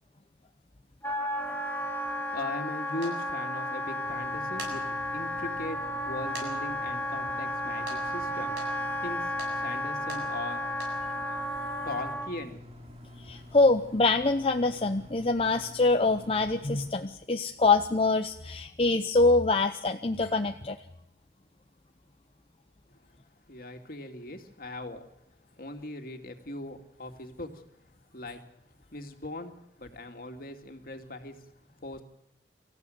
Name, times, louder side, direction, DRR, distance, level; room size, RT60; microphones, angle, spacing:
Wind instrument woodwind instrument, 1.0-12.3, left 1 dB, 10° left, 1.8 m, -33 dB
voice 1, 2.3-4.8 5.1-5.8 6.0-10.6 11.8-12.6 23.5-25.0 25.6-27.6 28.1-28.4 28.9-31.5 31.8-32.0, left 2 dB, 55° left, 5 dB, 2.4 m, -39 dB
Slate Board, 3.0-3.2 4.3-4.8 5.3-5.4 6.3-6.5 6.8-6.9 7.9-8.0 8.6-8.7 9.4-9.5 10.1-10.2 10.7-10.9, right 3 dB, 75° right, 7.6 m, -41 dB
sound 1, 4.0-16.9, left 1 dB, 35° right, 3.6 m, -48 dB
voice 2, 13.2-20.8, left 3 dB, 30° left, 6 dB, 0.8 m, -25 dB
25.0 x 15.0 x 9.3 m, 0.86 s
head